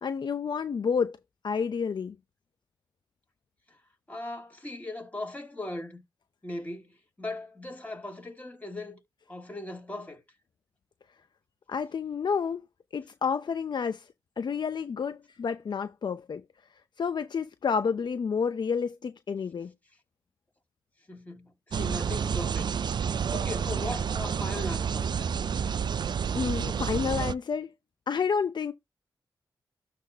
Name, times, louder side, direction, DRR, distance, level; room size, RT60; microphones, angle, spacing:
voice 1, 0.0-1.2 1.4-2.2 11.7-12.6 12.9-14.1 14.4-16.4 17.0-19.7 26.3-27.7 28.1-28.7, left 6 dB, 65° left, 0.6 m, -29 dB
voice 2, 4.1-6.0 6.4-9.0 9.3-10.2 21.1-22.7 23.3-25.3, left 2 dB, 20° left, 5.8 m, -38 dB
sound 1, 21.7-27.3, right 7 dB, 65° right, 0.4 m, -29 dB
12.5 x 4.3 x 2.8 m
cardioid pair, 45°, 8 cm